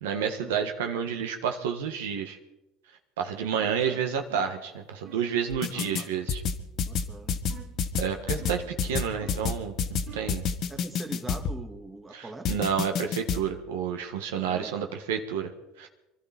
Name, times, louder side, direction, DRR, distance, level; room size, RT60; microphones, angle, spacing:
voice 1, 0.0-2.4 3.2-6.4 8.0-10.4 12.1-15.5 15.8-15.9, right 7 dB, 85° right, 5 dB, 1.4 m, -30 dB
sound 1, 3.6-3.9 4.3-4.6 5.0-5.3 5.8-6.1 7.5-7.9 8.4-8.7 9.2-9.5 10.1-10.4, right 7 dB, 60° right, 3.6 m, -48 dB
sound 2, 5.5-6.0 6.3-11.6 12.5-13.4, left 6 dB, 55° left, 1.2 m, -28 dB
voice 2, 5.7-6.1 6.8-7.4 10.7-12.6 14.5-15.0, right 2 dB, 20° right, 5 dB, 1.9 m, -42 dB
24.0 x 12.5 x 4.3 m, 0.93 s
hypercardioid pair, 85°, 0 cm